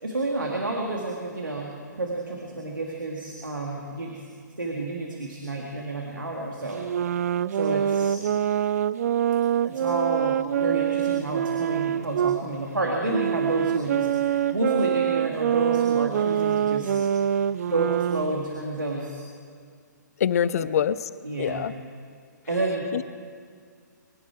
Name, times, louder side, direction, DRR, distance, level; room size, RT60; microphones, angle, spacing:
voice 1, 0.0-4.2 4.6-6.8 7.5-8.2 9.6-16.9 17.3-17.4 17.7-19.2 20.5-20.6 21.2-21.7 22.5-22.9, right 2 dB, 85° right, -1 dB, 2.2 m, -30 dB
sound 1, 6.7-12.4 13.1-18.5, right 9 dB, 50° right, 0.4 m, -25 dB
voice 2, 20.2-21.0 21.4-21.7 22.9-23.0, left 9 dB, 50° left, 18 dB, 0.6 m, -24 dB
24.0 x 11.5 x 4.6 m, 2.1 s
figure-of-eight pair, 130°, 10 cm